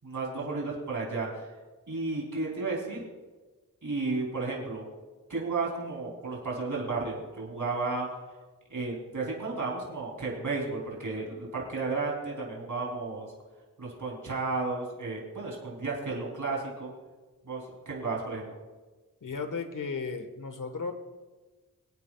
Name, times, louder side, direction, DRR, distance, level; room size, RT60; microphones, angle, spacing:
voice 1, 0.0-1.5 1.9-3.0 3.8-4.9 5.3-8.1 8.7-13.3 13.8-16.9 17.5-18.5, right 3 dB, 60° right, -3 dB, 3.4 m, -33 dB
voice 2, 19.2-20.9, left 4 dB, 65° left, 7 dB, 1.4 m, -35 dB
23.5 x 8.7 x 2.4 m, 1.3 s
wide cardioid pair, 60°, 35 cm